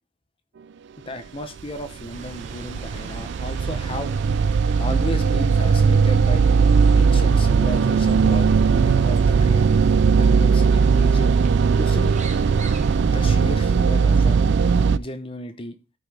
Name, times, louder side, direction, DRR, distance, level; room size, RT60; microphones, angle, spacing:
voice 1, 1.1-4.1 4.8-6.4 6.9-9.6 10.2-11.3 11.8-12.1 13.1-14.4 14.9-15.7, left 1 dB, 25° left, 0.9 m, -34 dB
sound 1, 1.8-15.0, right 5 dB, 55° right, 0.3 m, -18 dB
sound 2, 2.1-13.0, right 3 dB, 35° right, 1.1 m, -43 dB
12.5 x 5.2 x 3.5 m
head